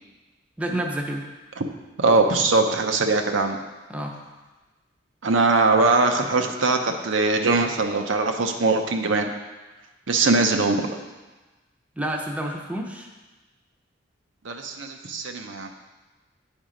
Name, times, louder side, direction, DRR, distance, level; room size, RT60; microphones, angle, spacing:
voice 1, 0.6-1.2 3.9-4.2 12.0-13.1, right 1 dB, 5° right, 1 dB, 0.7 m, -29 dB
voice 2, 2.0-3.6 5.2-9.3 10.1-10.9 14.4-15.7, right 3 dB, 80° right, 4 dB, 0.7 m, -21 dB
9.0 x 4.5 x 5.0 m, 1.2 s
head